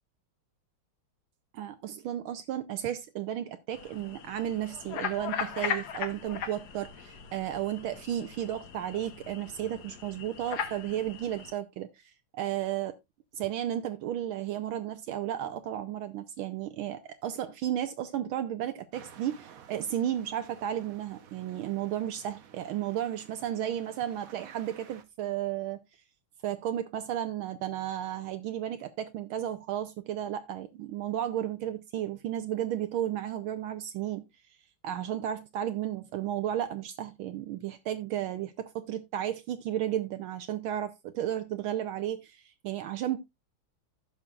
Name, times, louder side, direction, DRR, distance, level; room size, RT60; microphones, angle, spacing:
voice 1, 1.5-12.9 13.4-25.8 26.4-34.2 34.8-43.2, right 11 dB, 75° right, 1.5 m, -33 dB
sound 1, 3.7-11.5, left 7 dB, 55° left, 1.4 m, -38 dB
sound 2, 18.9-25.0, right 8 dB, 60° right, 1.0 m, -53 dB
15.5 x 5.7 x 2.4 m
omnidirectional pair, 2.3 m